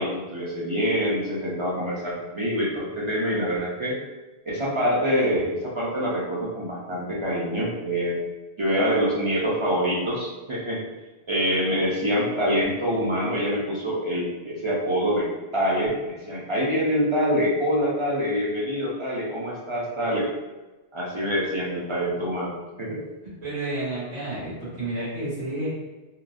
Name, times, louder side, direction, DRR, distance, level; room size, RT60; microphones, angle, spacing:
voice 1, 0.0-4.0 4.5-8.2 8.6-10.8 11.3-20.3 20.9-23.0, equal, 50° right, -6 dB, 0.3 m, -25 dB
voice 2, 23.4-25.7, right 2 dB, 90° right, -10 dB, 1.7 m, -30 dB
3.1 x 2.0 x 2.4 m, 1.1 s
omnidirectional pair, 1.1 m